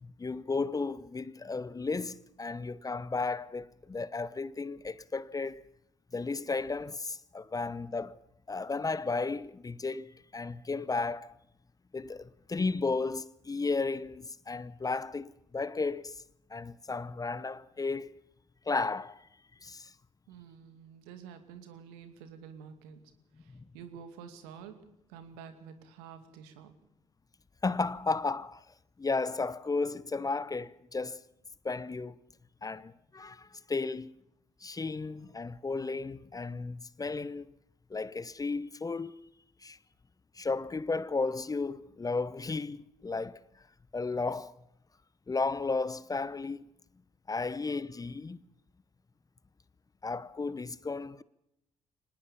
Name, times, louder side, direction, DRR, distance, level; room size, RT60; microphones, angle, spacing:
voice 1, 0.0-5.6 6.1-8.2 8.5-11.3 11.9-16.2 16.5-18.2 18.7-19.3 19.6-19.9 23.5-23.6 27.6-28.7 29.0-31.2 31.6-32.2 32.6-34.2 34.6-37.5 37.9-39.1 39.6-39.8 40.3-43.4 43.9-44.5 45.3-46.6 47.3-48.4 50.0-51.2, left 3 dB, 20° left, 0.9 m, -34 dB
voice 2, 20.3-23.0 23.4-24.8 25.1-26.7, right 7 dB, 70° right, 2.4 m, -49 dB
24.5 x 19.0 x 7.1 m
figure-of-eight pair, 45°, 16 cm